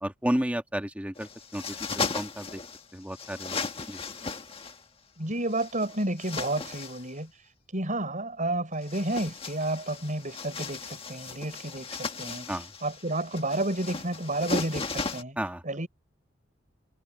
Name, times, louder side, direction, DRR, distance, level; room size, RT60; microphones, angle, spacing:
voice 1, 0.0-1.8 2.1-2.6 2.9-3.6 3.9-4.0 12.5-12.7 15.4-15.6, equal, 5° right, 1.8 m, -32 dB
sound 1, 1.1-2.8 3.1-4.8 5.5-7.1 8.7-15.2, left 4 dB, 30° left, 1.7 m, -36 dB
voice 2, 5.2-7.3 7.7-12.5 12.8-15.4 15.6-15.9, right 1 dB, 40° right, 5.6 m, -31 dB
head